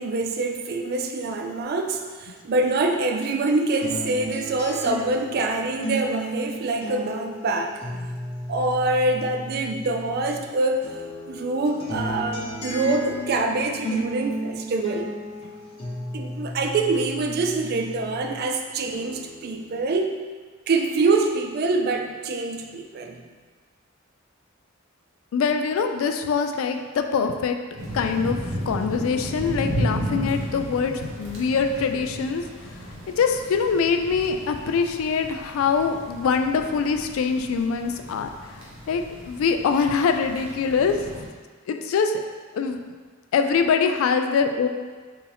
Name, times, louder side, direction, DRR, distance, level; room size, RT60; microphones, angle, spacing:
voice 1, 0.0-7.8 8.5-10.9 11.3-15.1 16.1-20.2 20.7-23.2, right 3 dB, 50° right, 4 dB, 0.4 m, -25 dB
sound 1, 3.8-10.5 10.8-18.5 18.9-19.8, equal, 25° left, 0.7 m, -34 dB
voice 2, 25.3-27.6 27.9-28.4 28.7-32.4 33.2-40.9 41.7-42.2 42.5-42.8 43.3-44.7, left 5 dB, 80° left, 6 dB, 0.3 m, -23 dB
sound 2, 27.8-41.3, equal, 80° right, 1.1 m, -34 dB
4.5 x 2.6 x 3.4 m, 1.5 s
head